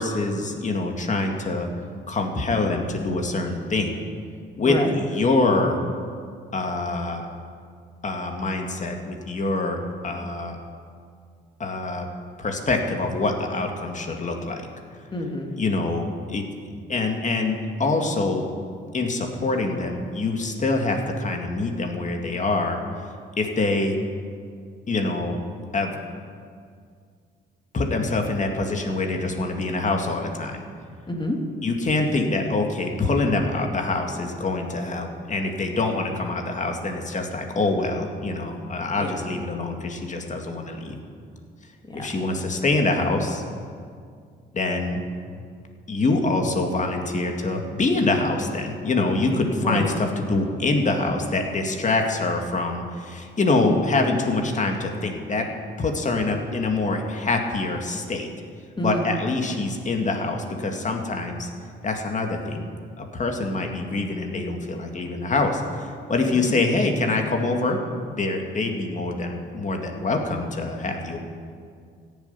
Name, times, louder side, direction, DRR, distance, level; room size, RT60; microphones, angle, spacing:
voice 1, 0.0-1.7 2.1-4.0 4.6-5.8 6.5-7.2 8.0-10.6 11.6-12.1 12.4-14.6 15.6-16.5 16.9-18.5 18.9-22.8 23.4-24.0 24.9-25.4 25.7-26.0 27.7-30.7 31.6-41.0 41.9-43.4 44.5-45.0 45.9-55.5 55.8-58.3 58.8-61.5 61.8-62.7 63.0-67.8 68.2-71.2, left 3 dB, 40° left, 3 dB, 2.1 m, -25 dB
voice 2, 15.1-15.5 31.1-31.4 39.0-39.1 41.9-42.1 49.6-49.9 58.8-59.1, equal, 25° left, 2 dB, 2.3 m, -27 dB
15.0 x 7.4 x 9.8 m, 2.2 s
cardioid pair, 90°, 20 cm